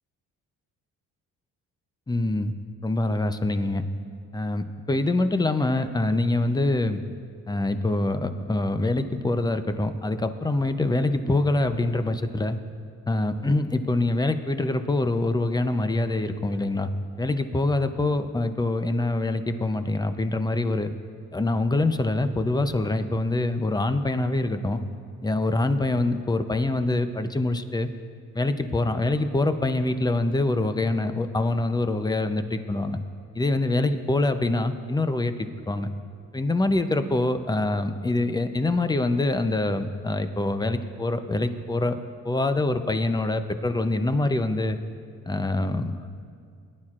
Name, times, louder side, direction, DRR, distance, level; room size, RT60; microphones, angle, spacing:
voice 1, 2.1-2.5 2.8-3.8 4.3-7.0 7.5-12.6 13.1-16.9 17.2-20.9 21.3-24.8 25.2-27.9 28.3-33.0 33.3-35.9 36.3-42.0 42.2-44.8 45.2-46.1, left 2 dB, 15° left, 9 dB, 0.6 m, -25 dB
19.5 x 10.5 x 2.5 m, 2.3 s
cardioid pair, 90°, 30 cm